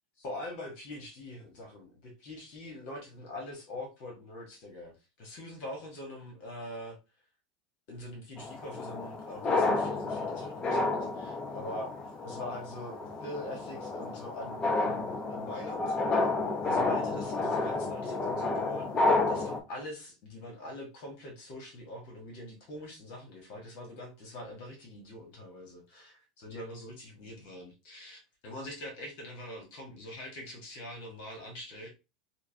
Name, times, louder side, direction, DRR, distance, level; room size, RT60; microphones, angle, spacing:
voice 1, 0.2-7.0 7.9-11.9 12.2-16.0 16.6-18.9 19.3-31.9, left 1 dB, 55° left, 2 dB, 1.1 m, -44 dB
sound 1, 8.4-19.6, left 3 dB, 25° left, 0.6 m, -31 dB
4.4 x 2.1 x 2.6 m, 0.27 s
figure-of-eight pair, 80°, 4 cm